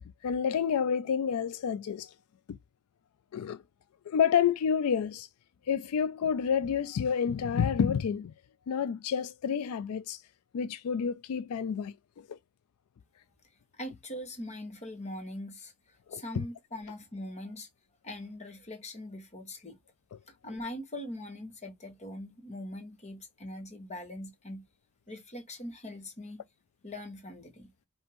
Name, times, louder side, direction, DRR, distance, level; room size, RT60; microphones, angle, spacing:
voice 1, 0.2-2.1 2.5-2.6 3.3-3.6 4.1-5.3 5.7-8.3 8.7-10.2 10.5-12.4 16.1-16.4, left 7 dB, 75° left, 0.3 m, -29 dB
voice 2, 13.7-17.7 18.0-19.8 20.3-24.6 25.1-26.4 26.8-27.7, left 1 dB, 30° left, 1.4 m, -42 dB
5.3 x 2.7 x 3.0 m
head